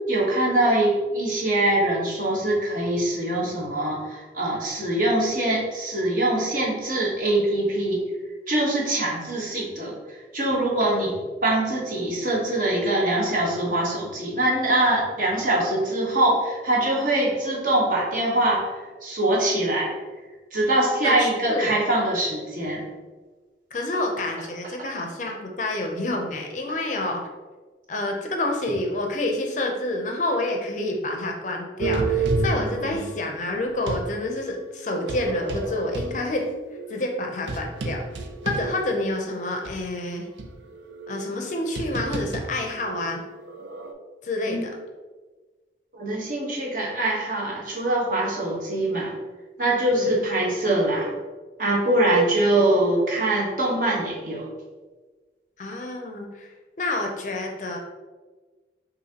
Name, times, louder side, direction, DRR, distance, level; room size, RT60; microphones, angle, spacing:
voice 1, 0.1-8.0 8.5-11.1 11.4-18.7 19.0-19.9 20.5-22.8 44.5-44.7 46.0-49.1 49.6-51.1 51.6-54.5, right 1 dB, 45° right, -3 dB, 1.1 m, -23 dB
voice 2, 21.0-21.7 23.7-27.2 27.9-36.4 36.9-38.0 38.4-40.3 41.1-43.2 44.2-44.7 49.9-50.2 55.6-56.5 56.8-57.8, left 2 dB, 45° left, 2 dB, 0.5 m, -28 dB
sound 1, 31.8-34.1 34.9-39.2 39.6-39.7 40.4-43.9, right 3 dB, 75° right, 0.5 m, -30 dB
5.8 x 2.6 x 2.8 m, 1.3 s
head